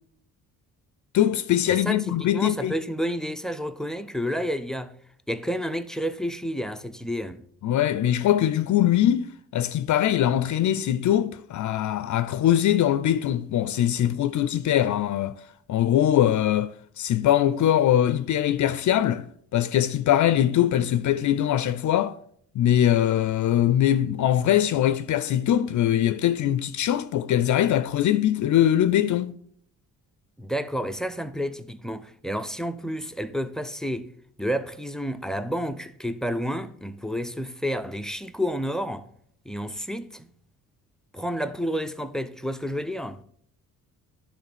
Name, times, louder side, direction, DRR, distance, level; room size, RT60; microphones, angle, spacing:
voice 1, 1.1-2.7 7.6-15.4 15.7-16.7 17.0-22.1 22.6-29.3, left 11 dB, 55° left, 0.5 m, -22 dB
voice 2, 1.7-4.9 5.3-7.4 30.4-34.1 34.4-39.1 39.5-40.3 41.1-43.2, equal, ahead, 0.4 m, -30 dB
9.9 x 3.6 x 6.9 m
cardioid pair, 95°, 35 cm